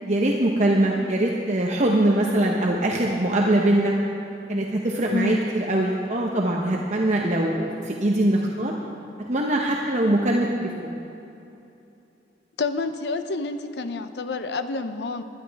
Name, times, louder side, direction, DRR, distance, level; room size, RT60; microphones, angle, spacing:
voice 1, 0.1-3.9 4.5-8.7 9.2-10.9, right 1 dB, 40° right, -1 dB, 0.8 m, -22 dB
voice 2, 5.1-5.4 12.6-15.2, left 3 dB, 75° left, 9 dB, 0.7 m, -28 dB
20.0 x 11.0 x 3.5 m, 2.8 s
head